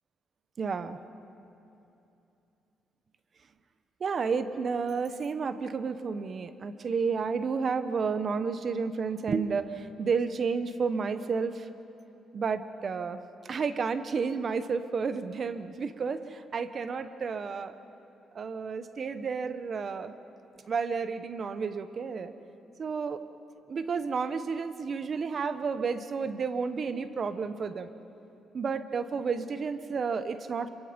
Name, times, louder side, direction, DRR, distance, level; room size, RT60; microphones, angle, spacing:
voice 1, 0.6-1.0 4.0-11.7 12.3-17.7 18.3-20.1 20.7-22.3 22.8-23.2 23.7-27.9 28.5-30.7, right 5 dB, 45° right, 12 dB, 1.1 m, -31 dB
26.5 x 23.5 x 5.3 m, 2.8 s
cardioid pair, 90°, 0 cm